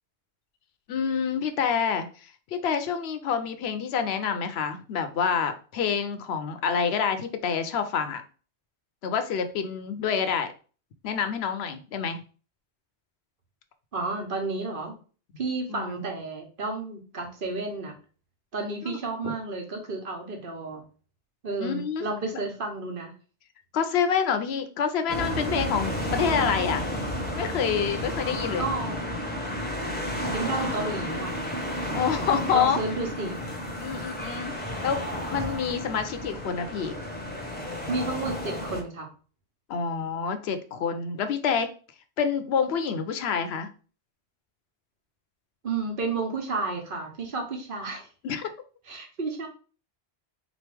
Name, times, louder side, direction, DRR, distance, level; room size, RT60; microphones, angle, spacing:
voice 1, 0.9-8.2 9.0-10.5 11.0-12.2 15.7-16.0 18.8-19.0 19.2-19.3 21.6-22.0 23.7-26.9 27.3-28.7 31.9-32.8 33.8-34.5 34.8-36.9 39.7-41.7 42.2-43.7 48.2-48.5, left 7 dB, 70° left, 9 dB, 0.8 m, -27 dB
voice 2, 13.9-14.9 15.4-18.0 18.5-20.8 21.4-23.1 28.6-29.0 30.3-31.3 32.5-33.4 37.9-39.1 45.6-48.1 48.9-49.5, right 3 dB, 50° right, 3 dB, 1.1 m, -31 dB
sound 1, 25.1-38.8, equal, 10° left, 0.8 m, -32 dB
3.9 x 3.0 x 3.3 m, 0.38 s
omnidirectional pair, 1.1 m